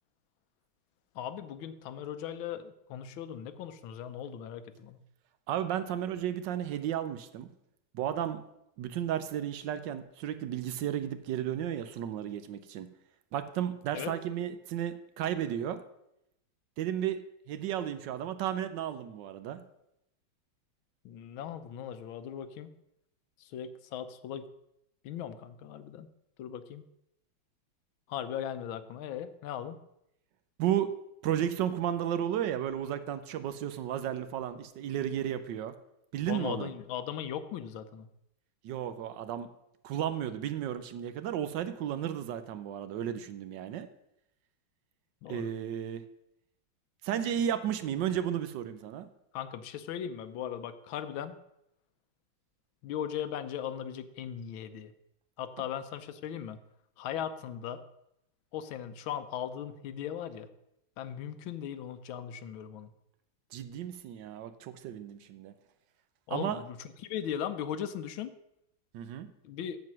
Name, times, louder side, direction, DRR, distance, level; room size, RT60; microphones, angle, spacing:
voice 1, 1.1-5.0 13.9-14.2 21.0-22.7 23.4-24.5 25.0-26.1 26.4-26.8 28.1-29.8 36.3-38.1 45.2-45.5 49.3-51.4 52.8-54.9 55.4-56.6 57.0-57.9 58.5-60.5 61.0-62.9 66.3-68.4 69.4-69.8, left 9 dB, 85° left, 12 dB, 1.5 m, -38 dB
voice 2, 5.5-7.5 7.9-8.4 8.8-12.9 13.3-15.8 16.8-19.6 30.6-30.9 31.2-35.7 36.1-36.7 38.6-39.5 39.8-43.9 45.3-46.0 47.0-49.1 63.5-65.5 66.3-66.6 68.9-69.3, right 10 dB, 75° right, 11 dB, 1.2 m, -33 dB
7.7 x 7.6 x 6.0 m, 0.82 s
omnidirectional pair, 2.2 m